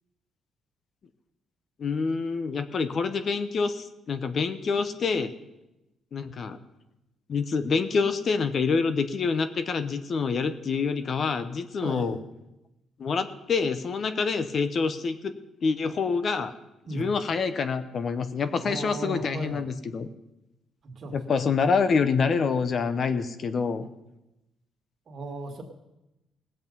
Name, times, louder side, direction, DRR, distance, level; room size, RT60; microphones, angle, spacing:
voice 1, 1.8-5.3 6.1-6.6 7.3-12.2 13.0-15.3 15.6-16.5 16.9-20.1 21.1-23.9, left 5 dB, 50° left, 11 dB, 0.8 m, -26 dB
voice 2, 11.8-12.1 16.9-17.1 18.6-19.6 20.8-21.2 25.1-25.6, right 2 dB, 50° right, 3 dB, 2.2 m, -35 dB
18.0 x 7.9 x 5.4 m, 0.93 s
cardioid pair, 90°, 0 cm